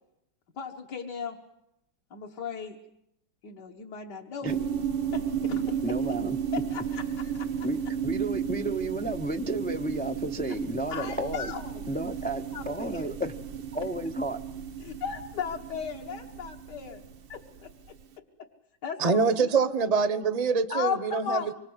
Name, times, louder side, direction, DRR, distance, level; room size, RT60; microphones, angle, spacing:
voice 1, 0.6-1.4 2.1-2.8 3.4-4.6 5.1-5.8 6.5-7.7 10.9-11.8 12.5-13.1 14.8-17.0 17.3-17.7 18.8-19.6 20.7-21.5, left 7 dB, 65° left, 2.0 m, -36 dB
sound 1, 4.5-17.9, right 8 dB, 80° right, 2.0 m, -33 dB
voice 2, 5.8-6.4 7.6-11.5 11.9-13.3 13.7-14.4, right 1 dB, 10° left, 0.4 m, -32 dB
voice 3, 19.0-21.5, right 5 dB, 30° right, 0.9 m, -25 dB
25.5 x 24.5 x 8.0 m
omnidirectional pair, 2.0 m